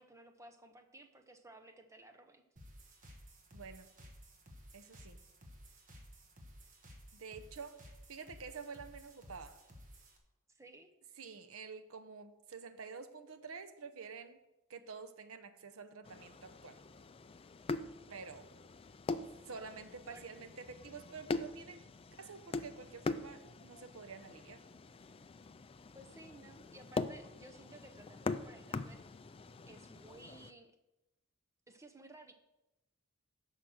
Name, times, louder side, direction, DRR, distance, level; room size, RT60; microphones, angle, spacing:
voice 1, 0.0-2.4 10.5-10.9 20.1-20.2 25.9-29.0 29.6-30.7 31.7-32.3, right 1 dB, 15° right, 6 dB, 0.8 m, -56 dB
sound 1, 2.6-10.2, equal, 35° right, 1.4 m, -56 dB
voice 2, 3.5-3.9 4.7-5.2 7.1-7.8 8.1-9.6 11.2-14.4 14.7-16.8 18.1-18.5 19.5-24.6, right 5 dB, 70° right, 9 dB, 0.8 m, -49 dB
sound 2, 16.0-30.5, left 3 dB, 25° left, 0.4 m, -43 dB
10.0 x 6.0 x 6.5 m, 0.98 s
head